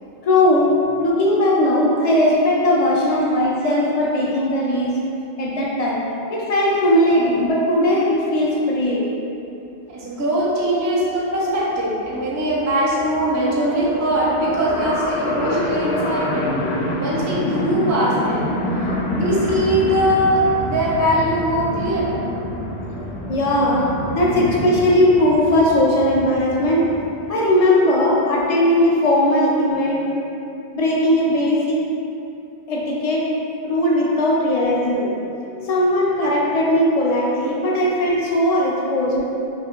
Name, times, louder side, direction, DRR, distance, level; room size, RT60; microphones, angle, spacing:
voice 1, 0.2-0.7 1.0-5.0 5.4-6.0 6.3-9.1 18.9-19.2 22.5-22.6 22.9-26.8 27.3-30.0 30.7-31.8 32.7-33.3 33.6-39.3, left 1 dB, 50° left, -4 dB, 0.4 m, -18 dB
voice 2, 9.9-16.5 17.0-18.6 19.1-22.2 23.6-23.9 24.4-24.5 26.1-26.2 26.5-26.8 28.1-28.2 35.9-36.0 38.1-38.2, right 1 dB, 30° right, -5 dB, 0.3 m, -21 dB
sound 1, 10.6-10.7 11.0-11.1 11.2-27.1, left 1 dB, 70° left, 0.8 m, -27 dB
2.8 x 2.4 x 3.7 m, 2.7 s
omnidirectional pair, 1.1 m